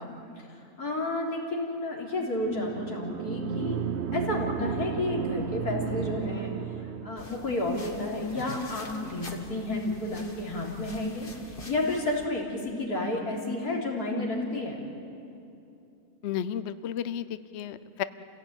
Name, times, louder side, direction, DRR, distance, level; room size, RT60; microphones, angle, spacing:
voice 1, 0.0-3.8 4.1-6.5 7.0-14.8, left 2 dB, 90° left, -2 dB, 4.1 m, -31 dB
sound 1, 2.4-7.4, right 8 dB, 55° right, 0.9 m, -33 dB
sound 2, 7.2-12.3, left 2 dB, 35° left, 1.8 m, -45 dB
voice 2, 16.2-18.0, left 9 dB, 55° left, 13 dB, 0.8 m, -33 dB
28.5 x 17.0 x 8.9 m, 2.7 s
omnidirectional pair, 1.6 m